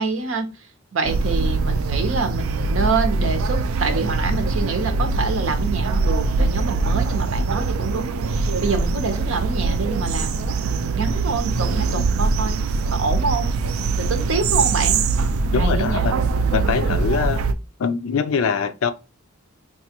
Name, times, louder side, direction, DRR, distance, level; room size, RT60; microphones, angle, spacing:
voice 1, 0.0-13.5 14.0-15.0 15.5-16.0 16.9-17.2, right 3 dB, 70° right, 0.8 m, -26 dB
sound 1, 1.0-17.5, right 4 dB, 90° right, 0.4 m, -22 dB
voice 2, 15.5-17.4 17.8-18.9, left 6 dB, 80° left, 0.4 m, -23 dB
4.7 x 2.3 x 2.9 m
head